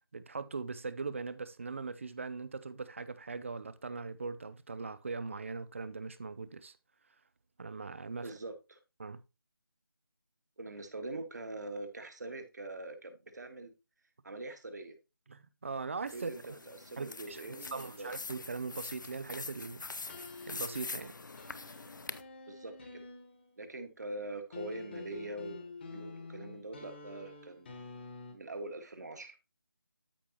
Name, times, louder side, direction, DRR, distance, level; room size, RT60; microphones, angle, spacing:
voice 1, 0.1-6.8 7.6-8.3 9.0-9.2 15.3-16.6 17.0-17.4 17.7-20.1 20.5-21.1, right 4 dB, 35° right, 0.5 m, -40 dB
voice 2, 8.2-8.8 10.6-13.7 14.2-15.0 16.1-18.1 22.5-23.0 23.6-27.7 28.3-29.4, right 2 dB, 50° right, 1.6 m, -43 dB
sound 1, 16.1-22.2, left 3 dB, 55° left, 0.6 m, -44 dB
sound 2, 20.1-23.6 24.5-28.3, left 4 dB, 30° left, 1.4 m, -48 dB
13.0 x 4.7 x 2.9 m
figure-of-eight pair, 160°, 12 cm